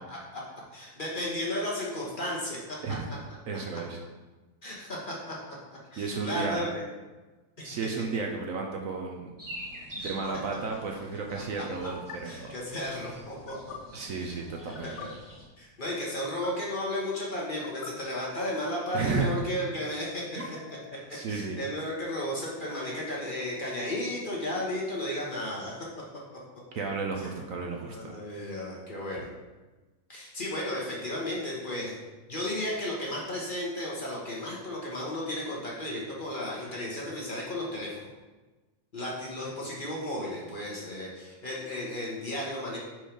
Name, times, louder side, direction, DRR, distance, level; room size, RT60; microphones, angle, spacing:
voice 1, 0.1-0.4 0.7-2.6 4.6-5.3 5.9-6.8 7.6-7.8 10.0-10.1 11.3-11.6 12.2-13.7 14.2-14.4 14.8-15.1 15.6-20.4 21.1-25.7 27.2-27.3 27.7-29.3 30.1-32.0 32.3-38.1 38.9-42.8, left 1 dB, 35° left, -4 dB, 1.1 m, -34 dB
voice 2, 3.5-4.0 6.0-6.7 7.6-9.3 9.9-12.5 13.9-14.9 18.9-19.3 20.4-20.5 20.9-21.6 26.7-28.1 29.2-29.3, right 4 dB, 65° right, 1 dB, 1.0 m, -33 dB
sound 1, 6.4-6.7 8.4-8.7 10.0-10.3 11.9-12.2 13.3-13.8 14.6-15.1 16.1-16.5 17.4-17.9 18.9-19.5 20.2-21.1, left 6 dB, 65° left, 0.7 m, -46 dB
sound 2, 9.4-15.4, right 1 dB, 15° right, 0.8 m, -46 dB
4.5 x 4.4 x 5.1 m, 1.2 s
omnidirectional pair, 1.7 m